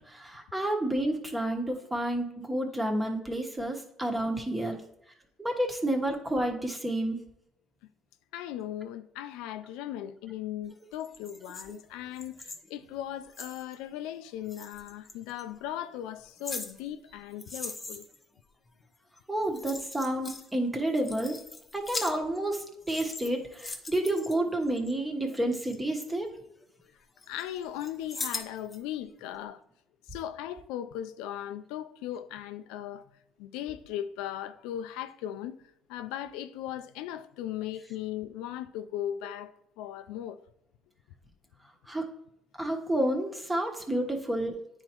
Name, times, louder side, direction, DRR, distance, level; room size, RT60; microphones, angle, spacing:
voice 1, 0.1-4.8 5.4-7.2 19.3-21.4 21.7-26.3 41.9-42.1 42.6-44.6, right 1 dB, 15° right, 1.2 m, -30 dB
voice 2, 8.3-18.1 27.3-29.6 30.1-33.1 33.4-35.6 35.9-40.4, left 11 dB, 85° left, 0.4 m, -38 dB
sound 1, 10.9-13.8 14.5-15.4 16.0-18.3 19.2-19.3 19.4-20.5 20.8-22.5 22.8-24.9 25.4-26.8 27.2-28.8 29.2-29.3, left 3 dB, 20° left, 0.9 m, -41 dB
9.6 x 4.3 x 3.0 m
supercardioid pair, 85°, 0 cm